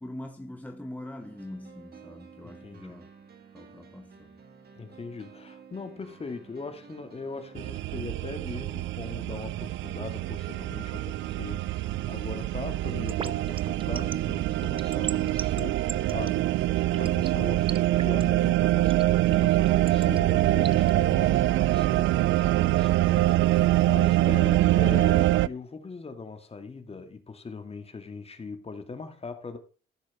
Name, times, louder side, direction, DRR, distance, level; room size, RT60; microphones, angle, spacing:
voice 1, 0.0-3.1 3.5-4.4, left 1 dB, 10° left, 1.3 m, -42 dB
sound 1, 1.2-15.4, right 6 dB, 50° right, 2.6 m, -51 dB
voice 2, 2.6-3.0 4.8-29.6, left 4 dB, 30° left, 2.3 m, -40 dB
sound 2, 7.6-25.5, right 15 dB, 75° right, 0.5 m, -24 dB
sound 3, 12.9-20.9, right 5 dB, 25° right, 0.5 m, -38 dB
15.0 x 6.5 x 4.3 m
cardioid pair, 90°, 20 cm